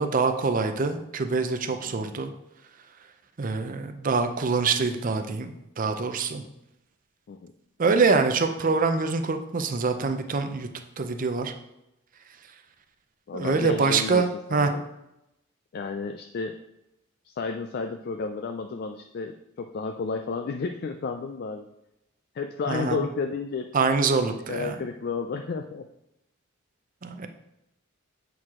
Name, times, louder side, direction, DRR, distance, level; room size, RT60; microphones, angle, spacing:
voice 1, 0.0-2.3 3.4-6.4 7.8-10.7 11.0-11.5 13.3-14.7 22.7-23.0 23.7-24.7 27.0-27.3, right 4 dB, 40° right, 7 dB, 0.5 m, -25 dB
voice 2, 13.3-14.2 14.5-14.8 15.7-16.6 17.2-21.7 22.3-23.7 24.5-25.9, left 4 dB, 50° left, 6 dB, 0.3 m, -32 dB
7.7 x 4.6 x 3.7 m, 0.88 s
head